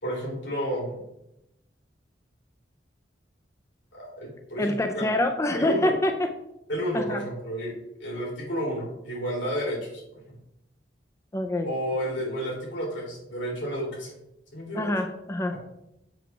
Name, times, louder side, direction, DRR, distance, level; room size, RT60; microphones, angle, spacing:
voice 1, 0.0-1.0 3.9-5.1 5.5-5.9 6.7-10.4 11.6-14.1 14.5-15.0, equal, 85° left, -3 dB, 3.0 m, -31 dB
voice 2, 4.6-6.3 6.9-7.2 11.3-11.7 14.7-15.5, left 1 dB, 15° left, 6 dB, 0.4 m, -26 dB
7.6 x 3.6 x 5.8 m, 0.87 s
head